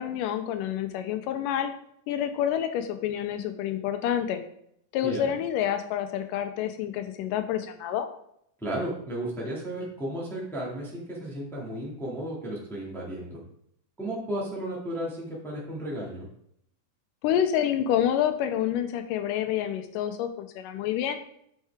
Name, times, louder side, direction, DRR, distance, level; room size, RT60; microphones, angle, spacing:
voice 1, 0.0-1.7 2.1-4.4 4.9-8.1 17.2-21.2, left 10 dB, 90° left, 8 dB, 2.2 m, -28 dB
voice 2, 5.0-5.3 8.6-13.4 14.0-16.3, right 1 dB, ahead, -4 dB, 1.2 m, -34 dB
7.4 x 5.6 x 3.5 m, 0.72 s
omnidirectional pair, 3.8 m